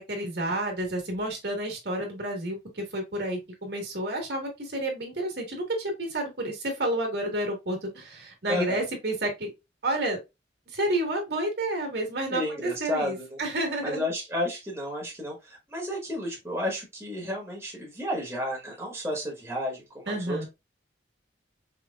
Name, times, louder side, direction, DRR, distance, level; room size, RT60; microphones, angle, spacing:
voice 1, 0.0-9.5 9.8-10.2 10.7-14.0 20.1-20.5, right 1 dB, 60° right, 1.6 m, -30 dB
voice 2, 8.5-8.8 12.3-13.4 13.8-20.5, left 1 dB, 15° right, 1.3 m, -32 dB
5.0 x 3.2 x 2.3 m
head